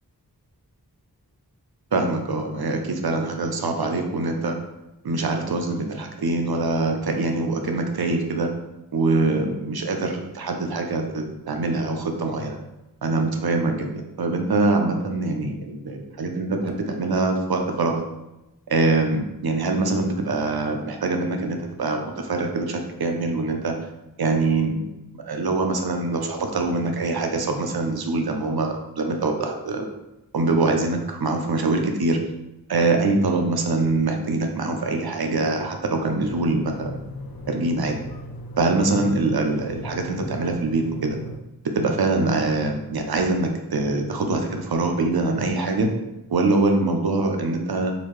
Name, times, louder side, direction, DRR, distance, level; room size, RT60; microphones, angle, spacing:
voice 1, 1.9-4.6 5.0-8.5 8.9-12.6 13.0-18.0 18.7-23.8 24.2-24.8 25.1-29.9 30.3-32.2 32.7-37.0 37.5-38.0 38.6-41.2 41.7-45.9 46.3-47.9, right 3 dB, 75° right, 3 dB, 0.6 m, -24 dB
sound 1, 36.2-41.4, equal, 70° left, 0.5 m, -36 dB
4.1 x 2.6 x 3.1 m, 0.96 s
wide cardioid pair, 45°, 37 cm